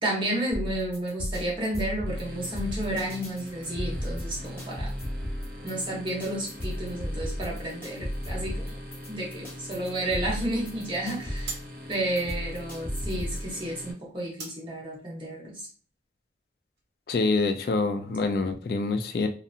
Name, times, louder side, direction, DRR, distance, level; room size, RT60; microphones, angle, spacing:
voice 1, 0.0-4.9 5.6-8.8 9.1-11.6 11.9-15.7, right 1 dB, 30° right, -3 dB, 0.9 m, -31 dB
sound 1, 0.5-13.5, equal, 15° left, 0.9 m, -35 dB
sound 2, 2.0-13.9, equal, 55° right, 0.6 m, -43 dB
sound 3, 11.4-16.9, right 4 dB, 75° right, 1.0 m, -48 dB
voice 2, 17.1-19.3, left 3 dB, 60° left, 7 dB, 0.3 m, -26 dB
2.7 x 2.4 x 2.5 m, 0.41 s
head